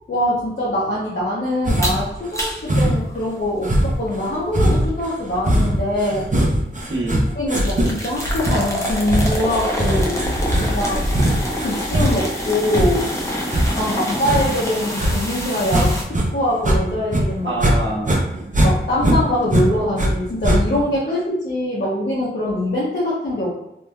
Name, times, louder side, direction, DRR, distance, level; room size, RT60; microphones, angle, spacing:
voice 1, 0.1-6.3 7.4-10.2 10.6-11.0 11.6-13.1 13.8-16.0 16.3-17.5 18.6-23.6, left 1 dB, 55° left, -7 dB, 0.8 m, -23 dB
sound 1, 1.6-2.1 2.7-3.2 3.6-16.3 16.5-17.8 18.0-20.1 20.4-20.9, right 1 dB, 40° right, 0.7 m, -20 dB
sound 2, 1.8-2.1 2.3-2.7 5.3-5.5 5.9-6.0 7.5-16.0, equal, 15° left, 0.7 m, -27 dB
voice 2, 6.9-7.3 10.5-11.0 14.0-14.4 17.5-18.2, right 1 dB, 70° right, -5 dB, 0.9 m, -27 dB
3.0 x 2.6 x 2.2 m, 0.86 s
wide cardioid pair, 50°, 21 cm